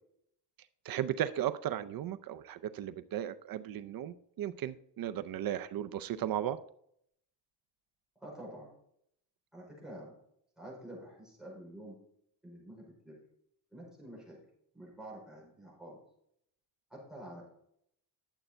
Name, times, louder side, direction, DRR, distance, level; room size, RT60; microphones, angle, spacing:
voice 1, 0.8-6.6, right 11 dB, 55° right, 12 dB, 0.6 m, -36 dB
voice 2, 8.2-8.7 9.5-10.1 10.6-12.0 12.4-13.2 13.7-14.4 14.7-16.0 16.9-17.5, right 1 dB, ahead, -4 dB, 5.0 m, -48 dB
11.5 x 7.9 x 4.4 m, 0.70 s
cardioid pair, 165°, 41 cm